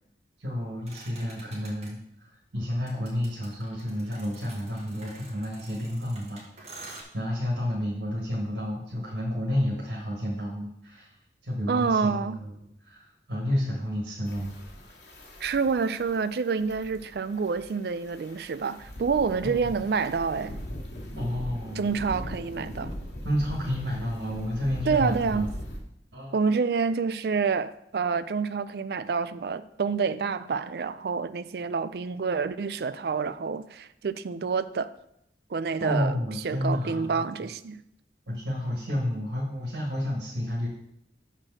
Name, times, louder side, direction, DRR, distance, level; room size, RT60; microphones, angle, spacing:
voice 1, 0.4-11.1 11.4-14.6 19.4-19.6 21.2-21.9 23.2-25.5 26.1-26.3 35.8-37.2 38.3-40.7, left 1 dB, 85° right, 1.6 m, -31 dB
sound 1, 0.9-1.9 2.9-7.0, right 2 dB, 35° right, 1.8 m, -47 dB
voice 2, 11.7-12.4 15.4-20.6 21.8-22.9 24.9-25.5 26.3-34.9 35.5-36.1 36.4-37.8, right 5 dB, 60° right, 0.4 m, -28 dB
sound 2, 14.2-25.8, equal, 75° left, 2.1 m, -40 dB
6.4 x 4.4 x 6.2 m
head